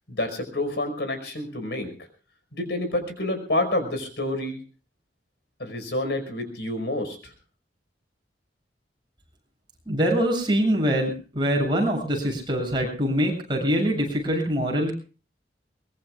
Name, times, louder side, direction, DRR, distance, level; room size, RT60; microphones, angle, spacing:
voice 1, 0.1-1.9 2.5-4.6 5.6-7.3, left 1 dB, 70° left, 7 dB, 5.2 m, -28 dB
voice 2, 9.9-14.9, equal, 25° right, 0 dB, 7.4 m, -24 dB
23.0 x 22.0 x 2.5 m, 0.37 s
head